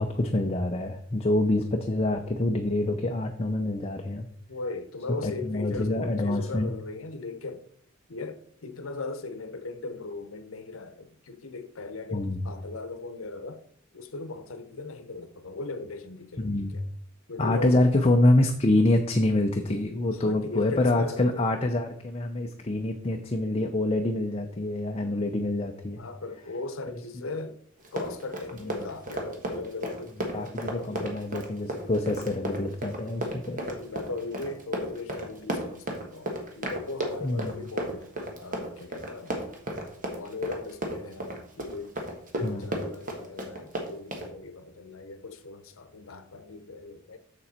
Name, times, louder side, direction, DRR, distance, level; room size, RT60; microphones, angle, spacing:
voice 1, 0.0-4.2 5.2-6.7 12.1-12.5 16.4-16.8 17.4-26.1 28.6-28.9 30.3-33.6 37.2-37.7 42.4-42.7, left 1 dB, 30° left, 0.6 m, -26 dB
voice 2, 4.5-7.7 8.1-13.6 13.9-16.9 17.3-17.9 20.1-21.6 25.9-27.6 27.9-31.2 33.6-38.1 38.4-39.5 40.1-42.0 42.4-47.2, left 3 dB, 80° left, 0.8 m, -38 dB
Run, 27.8-44.3, right 1 dB, 40° right, 1.5 m, -33 dB
7.0 x 6.9 x 4.3 m
head